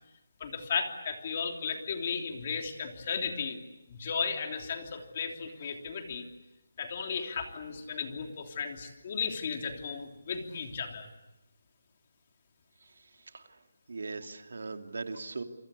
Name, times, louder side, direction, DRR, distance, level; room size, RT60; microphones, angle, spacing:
voice 1, 0.4-3.6 3.9-6.3 6.8-11.1, left 6 dB, 30° left, 4 dB, 3.2 m, -35 dB
voice 2, 13.9-15.4, right 3 dB, 70° right, 6 dB, 2.7 m, -39 dB
28.5 x 24.0 x 8.4 m, 0.94 s
hypercardioid pair, 175°, 0 cm